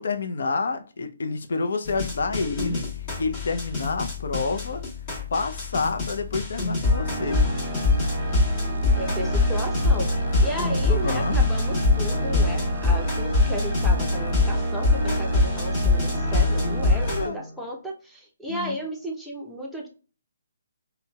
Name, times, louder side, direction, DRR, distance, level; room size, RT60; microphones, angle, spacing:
voice 1, 0.0-2.9 3.2-4.8 5.3-7.4 10.9-11.4 17.1-17.4 18.5-18.8, left 4 dB, 65° left, 7 dB, 0.6 m, -28 dB
sound 1, 1.9-17.3, left 3 dB, 35° left, 1.4 m, -24 dB
Organ, 6.8-17.7, right 2 dB, 35° right, 0.6 m, -34 dB
sound 2, 7.9-17.3, right 1 dB, 90° right, 0.4 m, -29 dB
voice 2, 9.0-10.1 10.4-19.9, equal, ahead, -2 dB, 0.7 m, -34 dB
3.8 x 2.2 x 2.2 m, 0.36 s
figure-of-eight pair, 145°, 0 cm